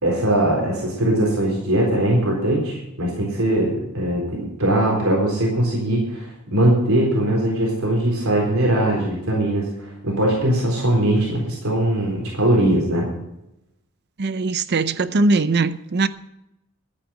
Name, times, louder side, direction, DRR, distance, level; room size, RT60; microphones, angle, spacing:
voice 1, 0.0-13.1, right 1 dB, 75° right, 4.0 m, -20 dB
voice 2, 14.2-16.1, right 3 dB, 50° right, 0.6 m, -20 dB
13.5 x 9.2 x 6.3 m
head